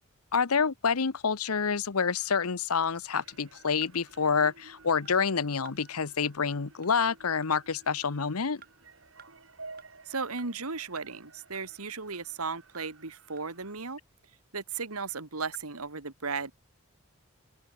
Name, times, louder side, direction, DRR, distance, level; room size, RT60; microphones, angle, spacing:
voice 1, 0.3-8.6, left 6 dB, 90° left, 0.9 m, -28 dB
sound 1, 3.1-13.7, right 3 dB, 65° right, 5.0 m, -53 dB
sound 2, 3.3-3.4 3.8-3.9 4.5-4.6 5.1-5.2 5.7-5.8 6.2-6.3 6.8-6.9 7.4-7.5 8.0-8.1 8.6-8.7 9.2-9.3 9.8-9.9 10.4-10.5 11.0-11.1 11.5-11.7 12.1-12.2 12.7-12.8 13.4-13.5, right 8 dB, 45° right, 3.8 m, -53 dB
voice 2, 10.1-14.0 14.5-16.5, right 4 dB, 90° right, 2.2 m, -35 dB
open air
head